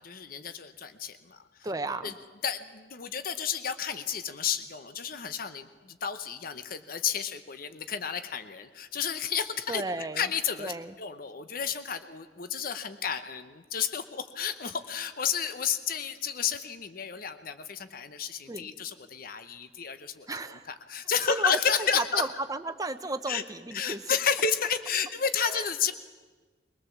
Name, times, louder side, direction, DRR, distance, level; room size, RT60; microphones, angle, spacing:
voice 1, 0.0-1.4 2.0-2.1 2.4-20.3 20.7-22.3 23.3-23.4 23.7-25.9, left 7 dB, 55° left, 10 dB, 0.9 m, -31 dB
voice 2, 1.6-2.1 9.7-10.2 10.6-10.9 18.5-18.7 20.3-20.7 21.3-21.9 22.1-24.2 25.5-25.7, right 2 dB, 20° right, 9 dB, 0.8 m, -34 dB
22.5 x 19.0 x 7.2 m, 1.4 s
head